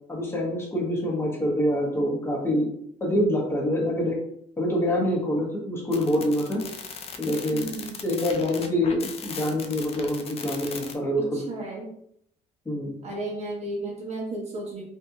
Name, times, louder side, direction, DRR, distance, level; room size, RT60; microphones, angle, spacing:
voice 1, 0.1-2.7 3.0-4.2 4.6-6.6 7.2-7.7 8.0-11.4 12.6-12.9, left 1 dB, 15° left, -3 dB, 0.9 m, -25 dB
sound 1, 5.9-10.9, left 6 dB, 35° left, 0.4 m, -38 dB
voice 2, 7.5-8.0 11.2-11.9 13.0-14.8, right 2 dB, 40° right, -2 dB, 1.1 m, -34 dB
2.7 x 2.6 x 2.4 m, 0.69 s
cardioid pair, 110°, 17 cm